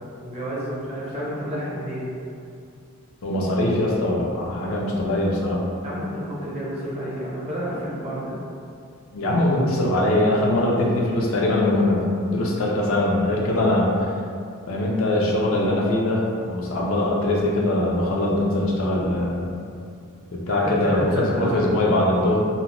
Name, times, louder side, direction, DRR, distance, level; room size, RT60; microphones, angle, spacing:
voice 1, 0.2-2.1 5.8-8.3 20.5-21.7 22.0-22.2, equal, 30° right, -7 dB, 0.6 m, -30 dB
voice 2, 3.2-5.6 9.1-14.1 14.7-19.5 20.3-22.4, left 1 dB, 65° left, -3 dB, 0.5 m, -22 dB
2.6 x 2.1 x 2.8 m, 2.4 s
head